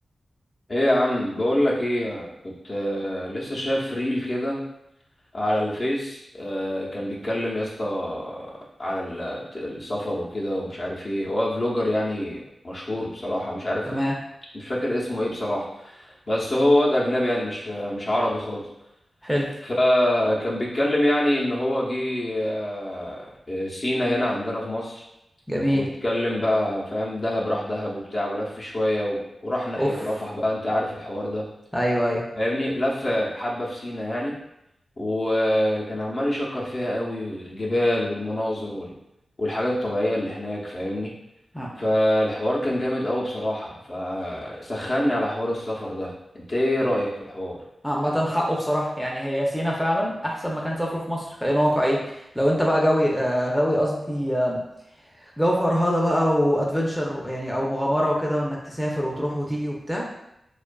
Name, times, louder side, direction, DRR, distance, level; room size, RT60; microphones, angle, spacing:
voice 1, 0.7-4.6 5.3-8.5 8.8-14.0 14.5-18.7 19.6-25.0 25.7-31.5 32.3-34.3 35.0-38.9 39.4-41.1 41.8-47.6, left 1 dB, 50° left, -4 dB, 0.7 m, -26 dB
voice 2, 19.2-19.5 25.5-25.8 29.8-30.1 31.7-32.2 41.5-41.7 47.8-54.6 55.4-60.1, equal, 5° left, -3 dB, 0.5 m, -24 dB
2.5 x 2.4 x 2.2 m, 0.84 s
cardioid pair, 55°, 0 cm